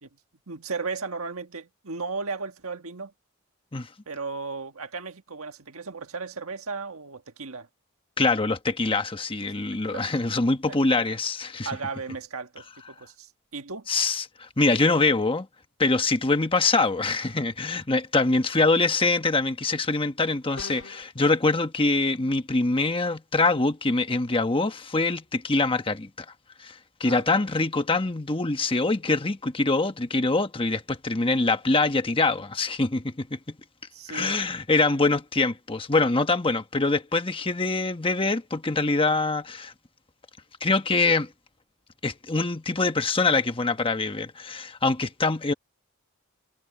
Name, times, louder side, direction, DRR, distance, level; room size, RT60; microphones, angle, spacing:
voice 1, 0.5-3.1 4.0-7.7 9.4-9.5 9.9-10.1 10.7-10.8 11.6-13.9 27.0-27.4 33.9-34.4, right 4 dB, 70° right, 1.7 m, -35 dB
voice 2, 8.2-11.7 13.9-15.5 15.8-26.1 26.6-33.6 34.1-39.7 40.6-41.3 42.0-45.5, left 3 dB, 25° left, 1.2 m, -24 dB
sound 1, 20.6-21.1, left 4 dB, 70° left, 1.6 m, -41 dB
head